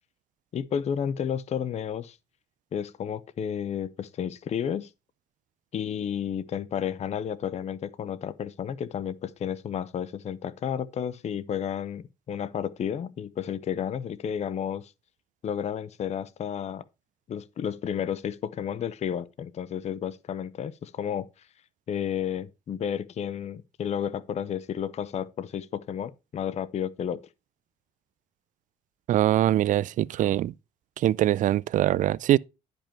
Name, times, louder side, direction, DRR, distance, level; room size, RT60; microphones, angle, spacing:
voice 1, 0.5-2.2 2.7-4.9 5.7-14.9 15.4-16.8 17.3-21.3 21.9-27.2, left 8 dB, 40° left, 0.6 m, -32 dB
voice 2, 29.1-30.5 31.0-32.4, right 13 dB, 50° right, 0.4 m, -23 dB
10.5 x 5.2 x 4.4 m
cardioid pair, 110°, 17 cm